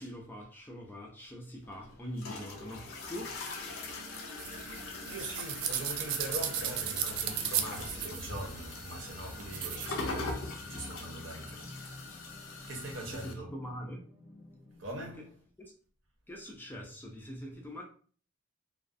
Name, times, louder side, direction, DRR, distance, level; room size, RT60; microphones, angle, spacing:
voice 1, 0.0-4.8 13.1-14.0 15.2-15.3 16.3-17.8, equal, 10° left, 0.3 m, -44 dB
sound 1, 1.6-13.3, left 3 dB, 75° left, 0.5 m, -42 dB
sound 2, 2.8-14.8, left 1 dB, 25° right, 0.7 m, -51 dB
sound 3, 4.4-9.9, right 9 dB, 85° right, 0.3 m, -36 dB
voice 2, 5.0-11.8 12.6-13.5 14.8-15.4, right 1 dB, 65° right, 0.7 m, -42 dB
2.3 x 2.2 x 2.5 m
head